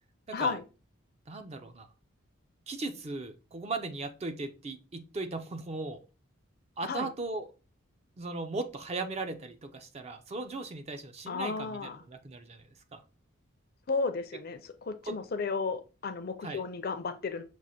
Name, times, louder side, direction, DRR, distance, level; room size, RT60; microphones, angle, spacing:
voice 1, 0.3-0.6 6.8-7.1 11.3-12.0 13.9-17.4, left 4 dB, 45° left, 0.4 m, -33 dB
voice 2, 1.3-1.9 2.7-6.0 6.8-7.5 8.2-13.0 15.0-15.2 16.4-16.6, right 3 dB, 30° right, 0.3 m, -37 dB
6.0 x 2.4 x 2.7 m
head